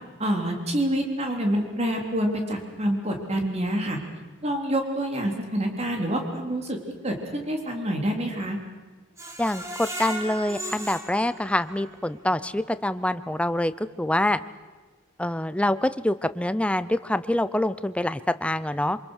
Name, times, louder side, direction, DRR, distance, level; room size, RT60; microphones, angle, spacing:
voice 1, 0.2-4.0 4.4-6.8 7.0-8.6, right 1 dB, 35° right, 2 dB, 3.7 m, -27 dB
Screech, 9.2-12.2 12.6-12.7 13.1-13.2, right 1 dB, 15° right, 2.5 m, -36 dB
voice 2, 9.4-14.4 15.2-19.0, left 1 dB, 5° left, 13 dB, 0.7 m, -25 dB
27.0 x 25.0 x 6.6 m, 1.3 s
head